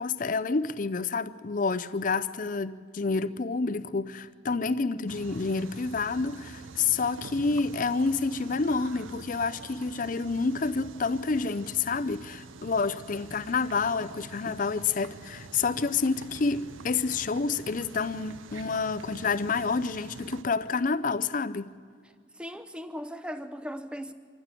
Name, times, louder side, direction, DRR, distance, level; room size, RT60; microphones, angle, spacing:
voice 1, 0.0-21.7, left 4 dB, 40° left, 0.5 m, -29 dB
sound 1, 5.1-20.4, right 3 dB, 80° right, 0.8 m, -46 dB
voice 2, 22.4-24.1, equal, 5° right, 0.7 m, -38 dB
25.0 x 14.5 x 7.6 m
head